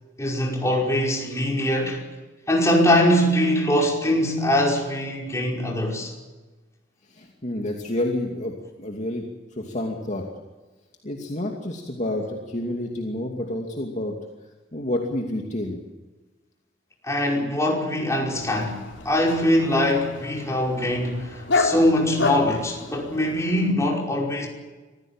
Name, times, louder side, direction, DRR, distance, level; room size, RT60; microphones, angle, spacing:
voice 1, 0.2-2.0 2.5-6.1 17.0-24.5, left 1 dB, 15° left, 5.3 m, -22 dB
voice 2, 7.1-9.2 9.5-10.2 11.0-14.1 14.7-15.8, left 1 dB, 40° left, 2.6 m, -29 dB
Dog, 18.4-23.7, left 3 dB, 80° left, 3.8 m, -30 dB
25.0 x 16.0 x 9.1 m
head